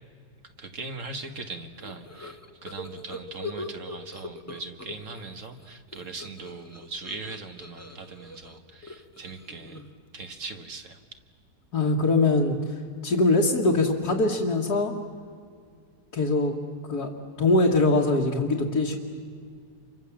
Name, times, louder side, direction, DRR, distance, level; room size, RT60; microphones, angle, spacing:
voice 1, 0.6-9.8 10.1-11.0, right 3 dB, 50° right, 6 dB, 1.9 m, -40 dB
sound 1, 1.8-5.3 5.6-10.1, left 2 dB, 10° left, 1.2 m, -41 dB
voice 2, 11.7-12.6 13.0-14.9 16.1-16.5 16.9-17.1 17.4-19.0, left 2 dB, 65° left, -2 dB, 2.3 m, -22 dB
29.0 x 24.5 x 7.3 m, 2.2 s
omnidirectional pair, 1.8 m